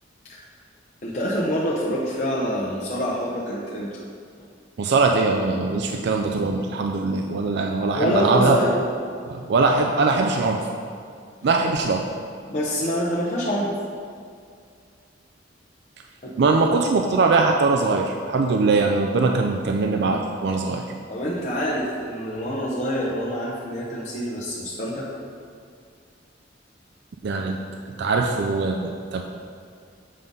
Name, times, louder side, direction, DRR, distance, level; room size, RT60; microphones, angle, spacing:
voice 1, 1.0-3.9 7.9-8.8 12.5-13.7 16.2-16.6 21.1-25.1, equal, 40° left, -6 dB, 0.8 m, -26 dB
voice 2, 4.8-8.6 9.3-10.7 11.4-12.0 16.4-20.8 27.2-27.6 28.0-29.2, right 3 dB, 60° right, 2 dB, 0.4 m, -21 dB
7.7 x 3.7 x 5.3 m, 2.2 s
head